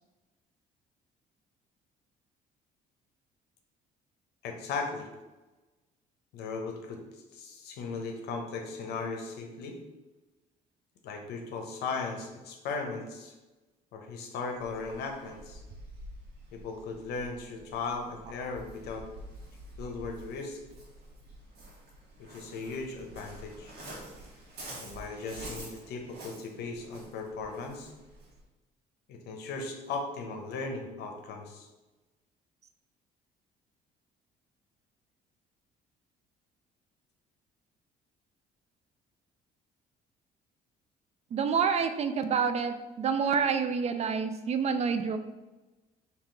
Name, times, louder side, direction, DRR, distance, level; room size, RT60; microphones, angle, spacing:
voice 1, 4.4-5.1 6.3-7.0 7.3-9.8 11.0-13.3 13.9-15.6 16.5-19.1 19.8-20.6 22.3-23.7 24.8-27.9 29.1-31.7, left 4 dB, 75° left, 3 dB, 0.8 m, -37 dB
Waves surf, 14.6-28.4, right 1 dB, 70° right, 1.4 m, -48 dB
voice 2, 41.3-45.2, right 6 dB, 40° right, 9 dB, 0.3 m, -28 dB
3.6 x 2.8 x 4.4 m, 1.1 s
cardioid pair, 110°, 17 cm